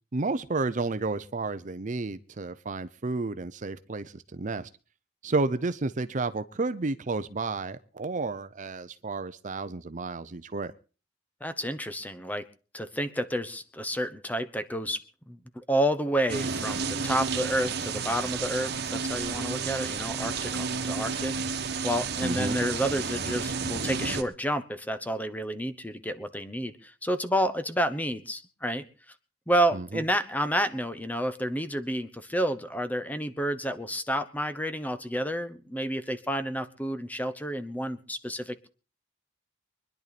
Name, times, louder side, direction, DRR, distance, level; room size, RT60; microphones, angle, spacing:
voice 1, 0.1-4.7 5.2-10.7 22.2-22.6 29.7-30.0, right 3 dB, 40° right, 0.7 m, -31 dB
voice 2, 11.4-12.5 12.7-28.8 29.5-38.7, equal, 10° left, 1.0 m, -30 dB
sound 1, 16.3-24.2, right 5 dB, 60° right, 1.5 m, -31 dB
24.5 x 10.5 x 4.2 m
head